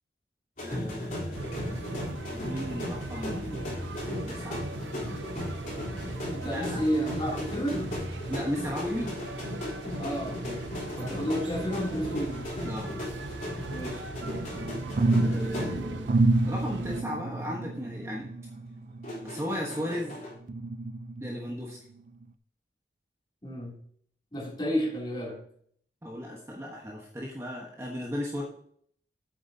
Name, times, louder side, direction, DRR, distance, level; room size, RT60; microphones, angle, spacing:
sound 1, 0.6-16.2 16.5-16.8 19.0-20.3, left 1 dB, 45° left, 3.5 m, -36 dB
voice 1, 0.6-4.6 6.4-6.8 8.3-9.2 12.6-12.9 15.0-18.3 19.2-20.2 21.2-21.8 26.0-28.4, equal, 15° right, -2 dB, 1.2 m, -36 dB
sound 2, 1.3-17.0, right 3 dB, 90° right, 0.6 m, -40 dB
voice 2, 6.3-8.0 10.0-10.7 11.0-12.5 13.7-14.0 23.4-23.8 24.3-25.4, equal, 25° left, -4 dB, 3.0 m, -31 dB
sound 3, 14.2-20.0 20.5-21.6 22.1-22.2, right 2 dB, 45° right, 0.4 m, -29 dB
8.6 x 8.0 x 2.8 m, 0.63 s
head